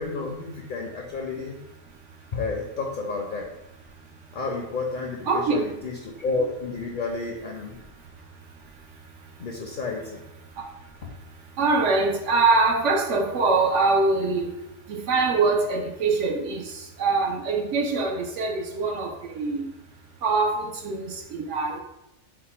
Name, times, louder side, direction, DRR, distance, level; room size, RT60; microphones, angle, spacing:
voice 1, 0.0-1.6 2.3-3.5 4.3-7.8 9.4-10.2, left 3 dB, 55° left, 0 dB, 0.6 m, -31 dB
voice 2, 5.3-5.6 11.6-14.5 14.9-16.6 17.0-19.7 20.2-21.8, right 3 dB, 75° right, 1 dB, 1.0 m, -23 dB
4.5 x 2.1 x 4.2 m, 0.89 s
omnidirectional pair, 1.3 m